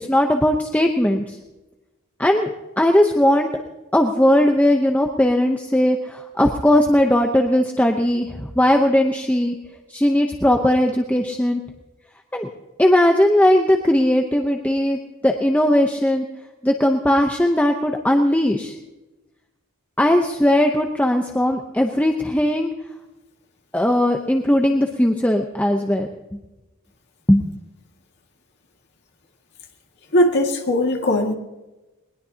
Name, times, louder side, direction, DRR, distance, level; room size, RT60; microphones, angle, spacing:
voice 1, 0.0-1.4 2.2-2.5 2.8-3.5 3.9-9.6 9.9-11.6 12.3-12.5 12.8-16.3 16.6-18.7 20.0-22.7 23.7-26.4 27.3-27.4, left 1 dB, 5° left, 3 dB, 0.8 m, -18 dB
voice 2, 30.1-31.3, left 1 dB, 55° left, 2 dB, 2.1 m, -19 dB
20.5 x 20.5 x 2.9 m, 1.1 s
head